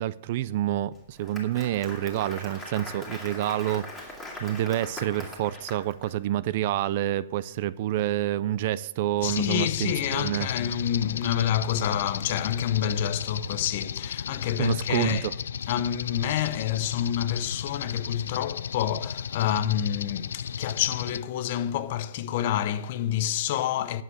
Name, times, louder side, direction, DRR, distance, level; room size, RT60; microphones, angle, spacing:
voice 1, 0.0-10.5 14.6-15.3, right 13 dB, 35° right, 0.3 m, -28 dB
Applause, 1.0-6.1, left 2 dB, 5° left, 2.1 m, -41 dB
sound 1, 9.2-21.2, left 7 dB, 90° left, 0.4 m, -34 dB
voice 2, 9.2-15.3 15.7-24.0, left 10 dB, 35° left, 0.6 m, -28 dB
9.8 x 7.3 x 7.8 m
hypercardioid pair, 175°, 0 cm